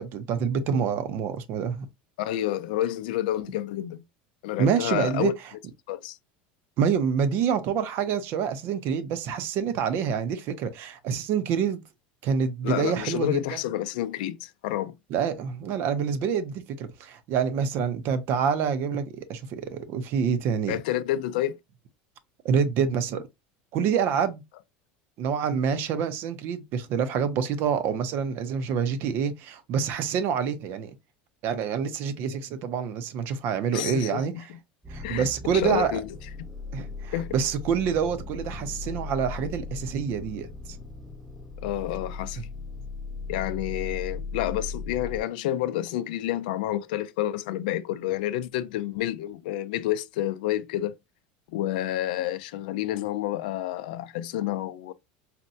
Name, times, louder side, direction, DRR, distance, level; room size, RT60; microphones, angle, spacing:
voice 1, 0.0-1.9 4.6-5.3 6.8-11.8 12.2-13.6 15.1-20.8 22.4-23.2 23.7-24.4 25.2-30.9 31.4-34.5 34.9-36.0 36.7-40.5 42.4-42.5, right 7 dB, 50° right, 0.6 m, -27 dB
voice 2, 2.2-4.0 4.4-5.3 5.9-6.2 12.6-15.0 20.7-21.6 33.7-34.6 35.0-35.3 35.5-36.1 36.4-36.5 37.1-37.3 41.6-42.4 43.3-51.0 51.5-54.9, left 13 dB, 85° left, 0.4 m, -29 dB
sound 1, 34.8-45.2, left 4 dB, ahead, 0.5 m, -38 dB
4.1 x 2.2 x 2.6 m
supercardioid pair, 140°, 5 cm